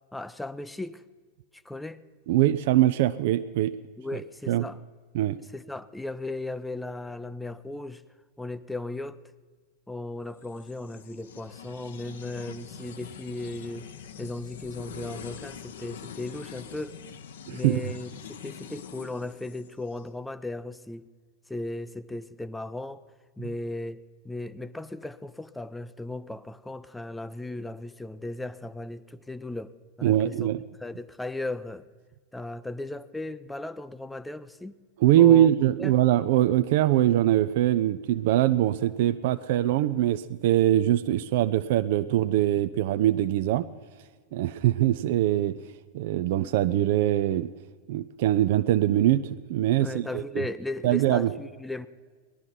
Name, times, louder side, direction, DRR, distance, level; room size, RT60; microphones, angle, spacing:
voice 1, 0.1-1.0 1.5-2.0 4.0-4.8 5.5-8.0 8.4-9.2 9.9-13.9 14.2-17.0 17.5-21.1 21.5-23.0 23.4-29.7 30.0-30.5 30.8-31.9 32.3-34.7 35.2-35.5 35.8-35.9 49.8-51.9, left 2 dB, 5° left, 0.5 m, -36 dB
voice 2, 2.3-3.7 4.5-4.6 5.1-5.4 17.5-17.9 23.4-23.5 30.0-30.6 35.0-43.6 44.3-45.6 45.9-47.5 47.9-50.2 50.8-51.3, right 13 dB, 50° right, 0.4 m, -22 dB
sound 1, 10.3-20.0, left 7 dB, 60° left, 0.8 m, -44 dB
17.5 x 12.0 x 5.7 m
figure-of-eight pair, 90°, 0 cm